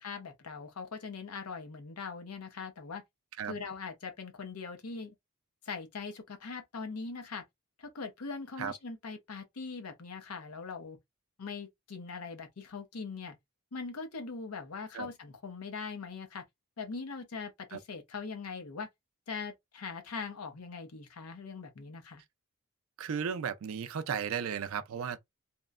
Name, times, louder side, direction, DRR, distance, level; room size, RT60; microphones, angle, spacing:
voice 1, 0.0-3.0 3.4-5.1 5.6-7.4 7.8-11.0 11.4-13.4 13.7-16.4 16.8-18.9 19.3-22.2, left 4 dB, 90° left, 0.7 m, -41 dB
voice 2, 23.0-25.2, right 7 dB, 70° right, 0.4 m, -35 dB
2.9 x 2.1 x 2.3 m
head